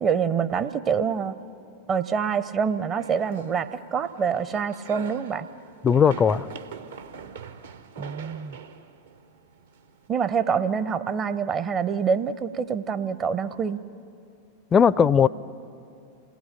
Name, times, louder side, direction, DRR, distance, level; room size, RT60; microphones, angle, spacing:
voice 1, 0.0-1.4 1.9-5.5 8.0-8.6 10.1-13.8, right 6 dB, 25° right, 13 dB, 0.6 m, -26 dB
sound 1, 3.0-10.1, right 6 dB, 65° right, 0.9 m, -42 dB
voice 2, 5.8-6.5 14.7-15.3, left 7 dB, 20° left, 18 dB, 0.4 m, -18 dB
27.5 x 18.5 x 6.6 m, 2.5 s
figure-of-eight pair, 90°, 0 cm